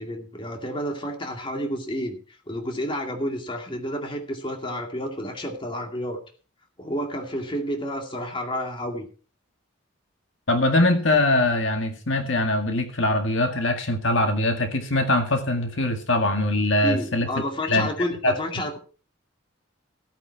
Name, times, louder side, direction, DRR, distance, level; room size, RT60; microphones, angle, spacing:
voice 1, 0.0-6.2 6.8-9.1 16.8-18.8, equal, 25° left, 3 dB, 2.2 m, -30 dB
voice 2, 10.5-17.3 17.7-17.9 18.2-18.6, left 1 dB, 70° left, 5 dB, 2.0 m, -22 dB
16.0 x 9.1 x 4.7 m, 0.39 s
head